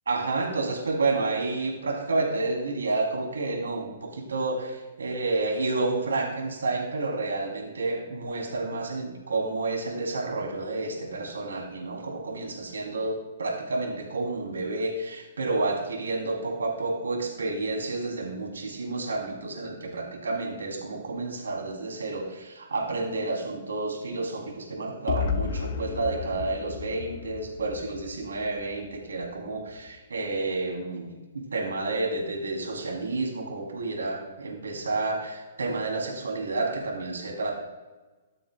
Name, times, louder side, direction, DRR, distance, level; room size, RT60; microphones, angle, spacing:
voice 1, 0.1-31.2 31.5-37.5, right 3 dB, 85° right, 0 dB, 3.0 m, -30 dB
sound 1, 25.1-29.0, left 7 dB, 55° left, 0.6 m, -33 dB
12.5 x 8.9 x 2.3 m, 1.2 s
hypercardioid pair, 125°, 0 cm